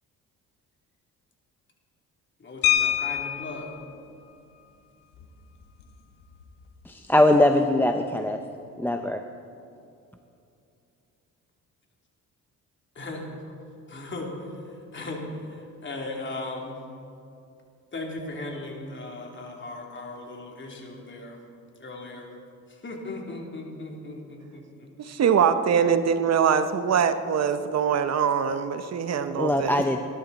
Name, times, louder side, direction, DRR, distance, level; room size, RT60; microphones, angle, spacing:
voice 1, 2.4-3.7 12.9-13.3 13.9-16.8 17.9-21.4 21.8-22.3 22.7-24.9, left 2 dB, 35° left, 0 dB, 3.1 m, -37 dB
sound 1, 2.6-3.7 5.2-5.3 5.6-5.8 6.2-6.5, left 11 dB, 90° left, 1.5 m, -25 dB
voice 2, 6.9-8.4 8.8-9.2 29.4-30.0, left 1 dB, 5° left, 6 dB, 0.7 m, -21 dB
voice 3, 25.0-30.0, right 7 dB, 55° right, 10 dB, 0.9 m, -23 dB
20.0 x 12.0 x 4.2 m, 2.6 s
cardioid pair, 85°, 32 cm